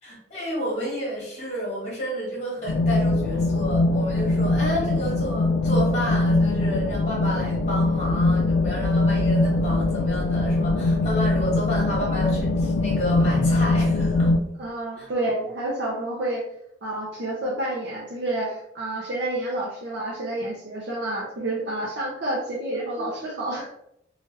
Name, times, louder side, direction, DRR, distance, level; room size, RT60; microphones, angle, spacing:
voice 1, 0.0-14.3 15.0-15.1 23.0-23.2, equal, 35° left, -4 dB, 1.1 m, -30 dB
sound 1, 2.7-14.4, left 2 dB, 85° left, 0.3 m, -22 dB
voice 2, 14.6-16.4 16.8-23.7, right 1 dB, 65° right, -4 dB, 0.6 m, -29 dB
2.9 x 2.4 x 3.1 m, 0.75 s
head